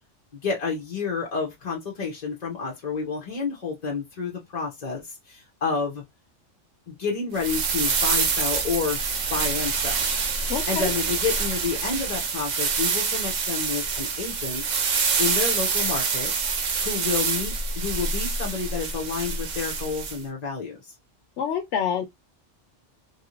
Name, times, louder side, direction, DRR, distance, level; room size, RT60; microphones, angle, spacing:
voice 1, 0.3-6.0 6.9-9.0 9.3-10.0 10.7-16.3 16.8-20.9, left 5 dB, 40° left, 0.7 m, -30 dB
sound 1, 7.3-20.2, right 5 dB, 50° right, 0.6 m, -26 dB
voice 2, 10.5-10.9 21.4-22.1, left 8 dB, 75° left, 0.9 m, -26 dB
3.0 x 2.6 x 2.9 m
omnidirectional pair, 1.2 m